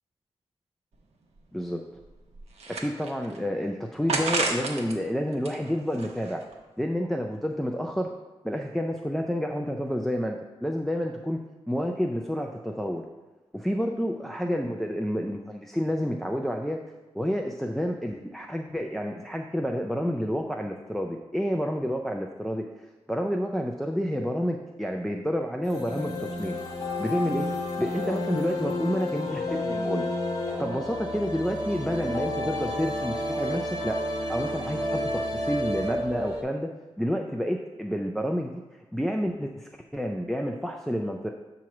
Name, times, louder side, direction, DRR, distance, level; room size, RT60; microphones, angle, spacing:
sound 1, 0.9-1.0 1.4-1.5 2.0-3.4 4.1-5.0 5.3-6.5, right 3 dB, 85° right, 0.9 m, -31 dB
voice 1, 2.7-6.4 6.8-8.1 8.4-11.4 11.7-13.0 13.5-16.8 17.1-26.6 27.0-27.5 27.8-30.1 30.6-34.0 34.3-36.7 37.0-41.3, equal, 5° left, 3 dB, 0.3 m, -29 dB
sound 2, 25.6-36.4, left 1 dB, 35° left, 1.3 m, -31 dB
7.4 x 3.0 x 5.8 m, 1.1 s
wide cardioid pair, 140°, 11 cm